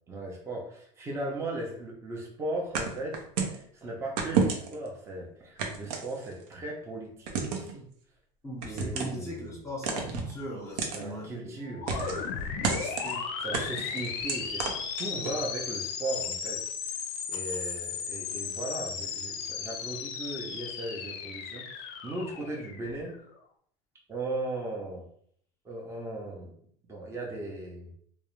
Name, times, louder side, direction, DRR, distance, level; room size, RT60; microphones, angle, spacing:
voice 1, 0.1-7.8 8.6-9.6 10.9-12.3 12.7-12.8 13.4-14.6 15.0-17.0 17.3-23.2 24.1-25.0 25.6-26.5 26.8-27.9, right 2 dB, 15° right, -1 dB, 0.5 m, -37 dB
sound 1, 2.7-3.6 4.2-4.9 5.6-6.5 7.3-7.7 8.6-9.2 9.8-10.3 10.8-11.0 11.9-12.3 12.6-13.1 13.5-15.4, right 5 dB, 85° right, 0.6 m, -31 dB
voice 2, 8.4-11.5 12.3-13.2, equal, 15° left, -3 dB, 0.7 m, -40 dB
sound 2, 11.6-23.3, left 6 dB, 60° left, 0.4 m, -36 dB
2.3 x 2.0 x 2.9 m, 0.63 s
supercardioid pair, 135°, 18 cm